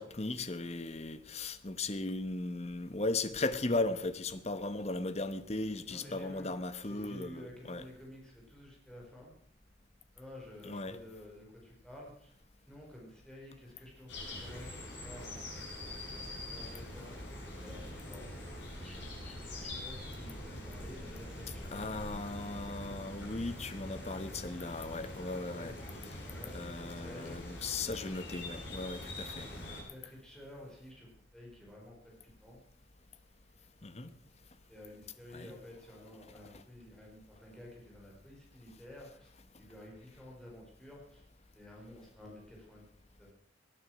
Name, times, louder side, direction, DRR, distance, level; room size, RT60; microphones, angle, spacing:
voice 1, 0.0-7.8 10.7-10.9 21.7-25.7 26.5-29.5 33.8-34.1 35.3-35.5, left 2 dB, 35° left, 1.0 m, -37 dB
voice 2, 5.9-6.6 6.8-9.3 10.1-12.3 12.6-15.5 16.4-17.1 17.6-18.3 18.8-22.1 25.5-26.7 27.0-27.4 29.9-32.6 34.7-41.2 41.5-42.9 43.2-43.3, left 1 dB, 5° left, 4.9 m, -52 dB
sound 1, 14.1-29.8, left 1 dB, 65° left, 6.5 m, -44 dB
18.5 x 9.9 x 6.2 m
head